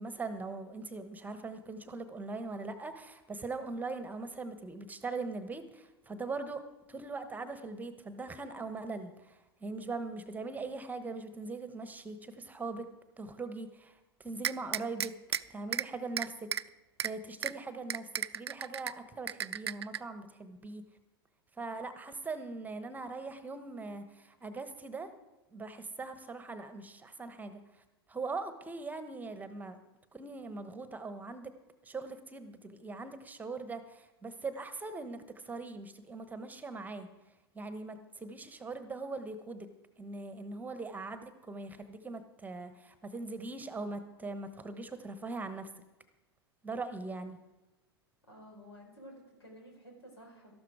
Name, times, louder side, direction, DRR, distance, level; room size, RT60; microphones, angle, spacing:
voice 1, 0.0-6.6 6.9-12.9 13.2-15.2 15.5-16.5 17.0-20.8 21.6-25.1 25.5-29.8 30.1-31.5 31.8-37.1 37.5-39.7 40.0-45.7 46.6-47.4, right 3 dB, 10° right, 10 dB, 1.1 m, -41 dB
sound 1, 14.4-15.4 15.7-15.8 16.2-16.6 17.0-17.1 17.4-17.5 17.9-18.9 19.3-20.0, right 9 dB, 80° right, 0.4 m, -33 dB
voice 2, 48.3-50.5, equal, 90° left, 1 dB, 4.5 m, -52 dB
13.0 x 12.0 x 4.9 m, 1.0 s
hypercardioid pair, 95°, 13 cm